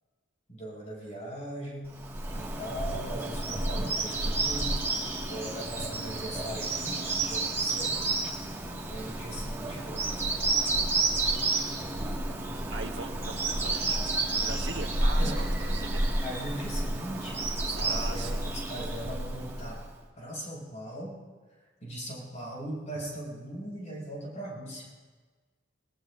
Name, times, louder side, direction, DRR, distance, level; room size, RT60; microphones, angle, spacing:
voice 1, 0.5-1.9 2.3-4.8 5.3-8.0 8.9-10.1 12.5-12.7 15.2-15.4 16.2-19.8 20.2-21.1 21.8-24.9, right 1 dB, 35° left, -4 dB, 6.6 m, -39 dB
Bird vocalization bird call bird song, 1.9-19.9, right 2 dB, 15° right, 1.8 m, -30 dB
voice 2, 12.7-14.1 14.4-16.0 17.7-18.5, right 3 dB, 65° right, 2 dB, 1.5 m, -40 dB
25.5 x 20.0 x 2.6 m, 1.4 s
head